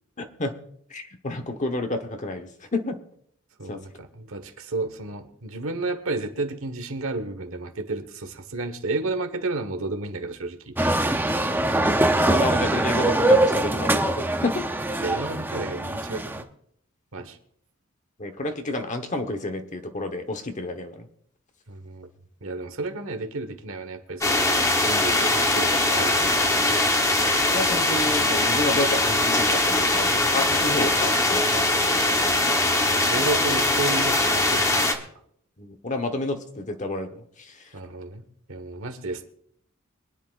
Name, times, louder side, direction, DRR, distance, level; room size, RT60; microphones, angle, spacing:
voice 1, 0.2-0.5 0.9-3.0 3.7-3.8 12.3-14.6 18.2-21.1 27.5-32.2 35.6-37.6, left 2 dB, 35° left, 7 dB, 1.1 m, -30 dB
voice 2, 3.6-11.1 15.0-16.5 17.1-17.4 21.7-22.1 22.4-26.7 32.1-35.1 37.7-39.3, right 3 dB, 75° right, 8 dB, 1.4 m, -32 dB
sound 1, 10.8-16.4, right 1 dB, 10° right, 0.7 m, -23 dB
sound 2, 24.2-34.9, left 2 dB, 15° left, 1.0 m, -21 dB
24.0 x 10.0 x 2.5 m, 0.68 s
head